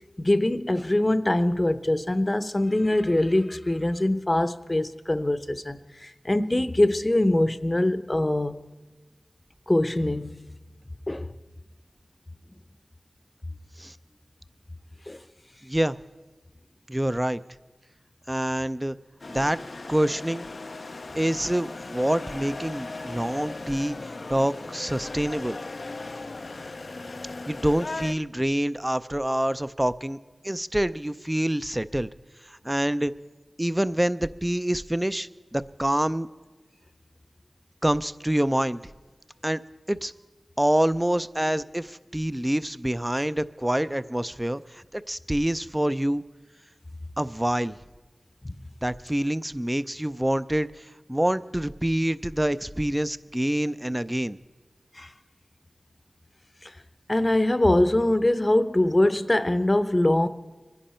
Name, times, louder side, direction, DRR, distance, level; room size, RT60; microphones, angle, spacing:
voice 1, 0.2-8.6 9.7-10.5 11.1-11.3 15.1-15.2 55.0-55.1 56.6-56.7 57.1-60.3, left 1 dB, 30° left, 0.7 m, -23 dB
voice 2, 15.6-16.0 16.9-17.4 18.3-19.0 19.3-19.6 19.9-20.5 21.2-24.0 24.3-25.6 27.5-30.2 30.4-32.1 32.5-33.1 33.6-36.3 37.8-38.8 39.4-39.6 39.9-40.1 40.6-46.2 47.2-47.8 48.8-50.7 51.1-54.4, right 1 dB, 15° right, 0.5 m, -26 dB
sound 1, 19.2-28.1, left 3 dB, 65° left, 0.4 m, -38 dB
24.0 x 10.5 x 4.3 m
wide cardioid pair, 45°, 0 cm